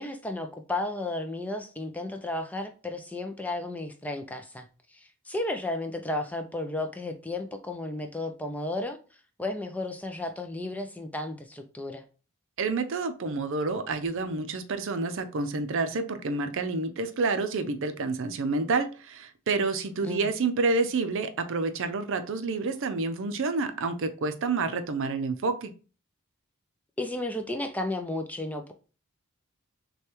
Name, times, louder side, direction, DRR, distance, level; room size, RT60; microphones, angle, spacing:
voice 1, 0.0-4.6 4.9-9.0 9.4-12.0 20.0-20.3 27.0-28.7, left 2 dB, 5° left, 0.4 m, -33 dB
voice 2, 12.6-25.7, right 3 dB, 60° right, 0.5 m, -29 dB
6.3 x 2.3 x 2.9 m
head